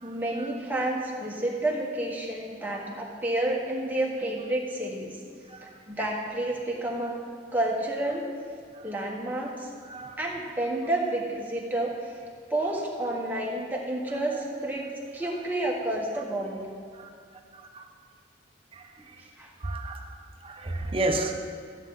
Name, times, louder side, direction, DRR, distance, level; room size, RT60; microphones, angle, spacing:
voice 1, 0.0-5.1 5.9-7.1 7.5-8.2 8.8-9.7 10.2-12.2 12.5-16.6 19.4-19.5, right 1 dB, 10° right, -2 dB, 1.3 m, -30 dB
voice 2, 19.6-20.0 20.4-21.3, right 2 dB, 30° right, 4 dB, 0.8 m, -29 dB
13.5 x 8.5 x 4.0 m, 2.1 s
head